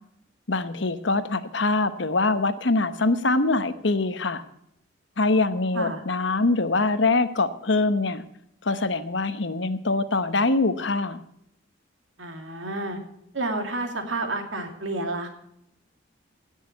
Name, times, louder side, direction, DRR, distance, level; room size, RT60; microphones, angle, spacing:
voice 1, 0.5-4.4 5.2-8.2 8.6-11.2, left 3 dB, 65° left, 11 dB, 1.0 m, -23 dB
voice 2, 12.2-13.0 13.3-15.3, right 2 dB, 70° right, 5 dB, 2.5 m, -30 dB
17.0 x 6.5 x 6.9 m, 0.75 s
head